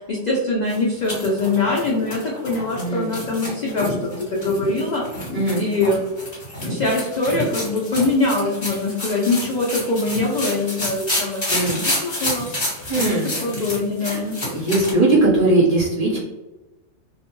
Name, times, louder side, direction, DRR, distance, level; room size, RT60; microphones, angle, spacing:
voice 1, 0.0-5.0 5.5-6.0 6.7-12.5 12.9-14.4, left 2 dB, 70° left, -3 dB, 0.4 m, -23 dB
sound 1, 0.7-14.9, left 1 dB, 30° left, 1.2 m, -29 dB
voice 2, 2.7-3.1 5.3-5.6 11.5-11.8 12.9-13.3 14.0-14.2 14.5-16.2, right 2 dB, 35° right, -7 dB, 0.8 m, -19 dB
2.5 x 2.1 x 2.9 m, 1.1 s
omnidirectional pair, 1.4 m